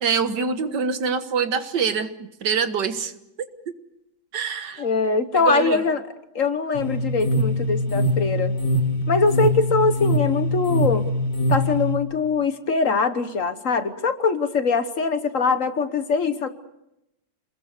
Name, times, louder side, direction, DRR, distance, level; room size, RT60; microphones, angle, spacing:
voice 1, 0.0-3.1 4.3-4.9 5.3-5.8, right 6 dB, 80° right, 9 dB, 2.0 m, -25 dB
voice 2, 4.8-6.0 6.3-8.5 9.1-11.1 11.5-16.5, left 4 dB, 50° left, 10 dB, 1.5 m, -22 dB
sound 1, 6.7-11.9, left 1 dB, 30° left, 1.9 m, -23 dB
27.5 x 21.0 x 6.7 m, 0.85 s
omnidirectional pair, 1.9 m